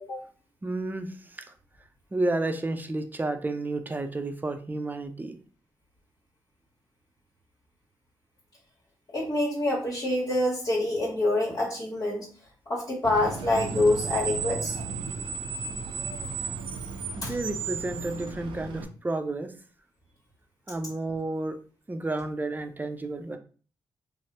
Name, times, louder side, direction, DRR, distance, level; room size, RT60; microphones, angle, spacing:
voice 1, 0.6-1.5 2.1-5.4 17.2-19.5 20.7-21.6 21.9-23.4, right 2 dB, 20° right, 7 dB, 0.5 m, -31 dB
voice 2, 9.1-12.3 12.7-14.8 17.2-17.3, left 2 dB, 55° left, -6 dB, 1.1 m, -26 dB
Screech, 13.0-18.8, right 5 dB, 80° right, 0.4 m, -34 dB
2.7 x 2.0 x 3.2 m, 0.40 s
supercardioid pair, 50°, 8 cm